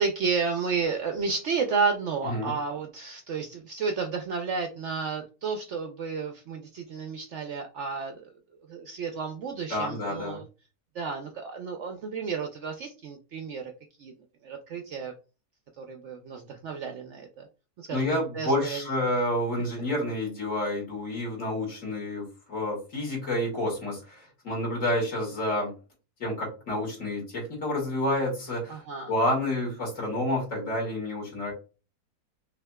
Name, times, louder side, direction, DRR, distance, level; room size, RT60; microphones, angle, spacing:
voice 1, 0.0-8.3 8.7-10.4 10.9-13.7 14.0-14.1 14.4-15.1 15.8-17.5 17.8-18.1 18.3-18.9 28.7-29.1, right 5 dB, 65° right, 5 dB, 0.7 m, -31 dB
voice 2, 9.7-10.4 17.9-25.7 26.2-28.8 29.1-31.5, left 1 dB, 55° left, -3 dB, 2.3 m, -29 dB
5.7 x 2.7 x 2.3 m, 0.33 s
omnidirectional pair, 1.6 m